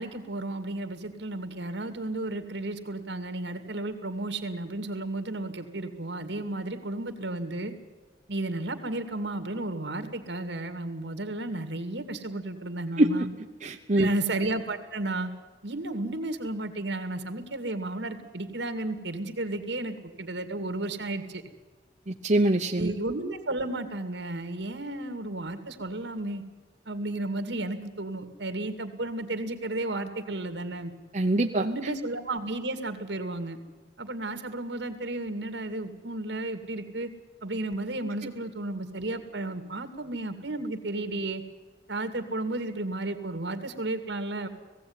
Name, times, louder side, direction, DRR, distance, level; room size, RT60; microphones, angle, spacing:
voice 1, 0.0-7.7 8.3-13.3 14.0-15.3 15.6-21.4 22.8-26.4 26.9-30.9 31.6-33.6 34.0-37.1 37.4-41.4 41.9-44.5, right 2 dB, 75° right, 8 dB, 2.2 m, -33 dB
voice 2, 13.6-14.1 22.1-22.9 31.1-31.7, right 1 dB, 40° right, 2 dB, 1.0 m, -23 dB
18.5 x 16.0 x 9.6 m, 1.3 s
head